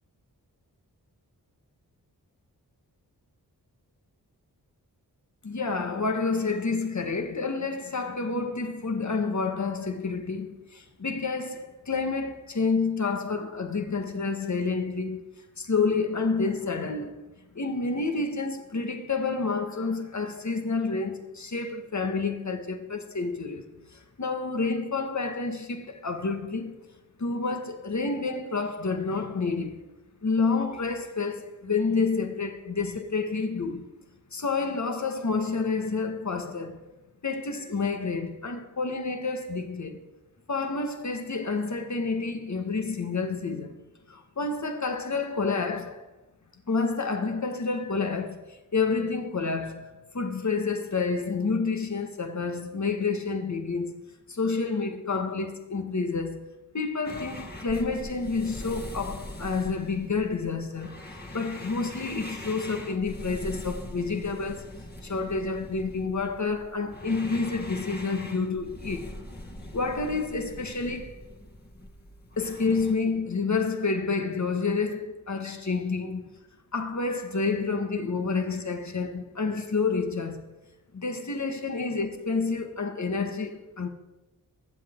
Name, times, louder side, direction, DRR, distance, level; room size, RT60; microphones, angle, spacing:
voice 1, 5.4-17.3 17.5-23.6 23.9-26.9 27.2-29.9 30.2-33.9 34.3-36.8 37.2-40.0 40.5-43.8 44.1-46.0 46.7-56.5 56.7-61.0 61.3-64.7 65.0-69.2 69.7-71.2 72.4-76.2 76.7-80.5 80.9-83.9, left 4 dB, 45° left, 1.7 m, -29 dB
sound 1, 57.0-72.9, left 1 dB, 25° left, 2.1 m, -42 dB
21.0 x 8.0 x 3.8 m
cardioid pair, 40°, 38 cm